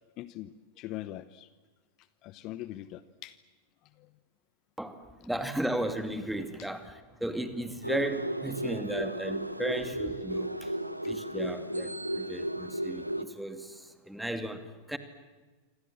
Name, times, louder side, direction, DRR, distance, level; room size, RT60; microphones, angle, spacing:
voice 1, 0.2-1.5 2.2-3.4 4.0-4.1 6.6-6.7 11.0-11.1, left 14 dB, 40° left, 16 dB, 0.9 m, -42 dB
voice 2, 4.8-10.8 11.1-15.0, right 1 dB, ahead, 9 dB, 2.4 m, -35 dB
sound 1, 7.8-13.2, right 1 dB, 90° right, 1.2 m, -34 dB
28.0 x 26.0 x 7.6 m, 1.3 s
figure-of-eight pair, 90°, 0 cm